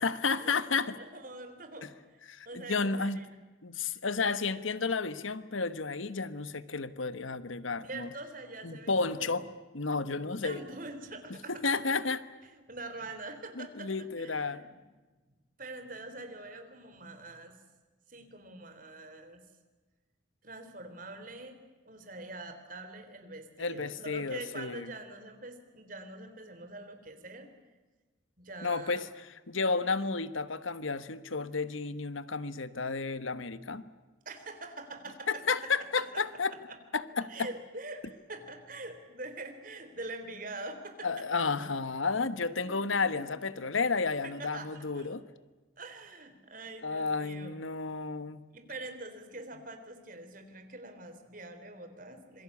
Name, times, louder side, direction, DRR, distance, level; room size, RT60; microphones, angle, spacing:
voice 1, 0.0-1.0 1.8-1.9 2.3-3.2 3.6-8.1 8.6-9.4 9.7-10.6 11.5-12.2 13.6-14.6 23.6-24.9 28.6-29.1 29.5-33.8 35.3-36.5 36.9-37.5 41.0-45.2 46.8-48.4, left 4 dB, 85° left, 14 dB, 1.3 m, -32 dB
voice 2, 1.0-2.2 2.5-3.2 7.8-9.5 10.4-11.6 12.5-14.8 15.6-17.5 18.1-19.4 20.4-21.6 21.9-27.5 28.4-29.1 34.3-35.4 36.0-36.2 37.3-41.2 41.6-41.7 42.0-42.1 42.6-43.4 44.2-45.1 45.8-47.6 48.5-52.4, right 2 dB, 45° right, 7 dB, 3.5 m, -44 dB
26.5 x 22.0 x 8.5 m, 1.2 s
head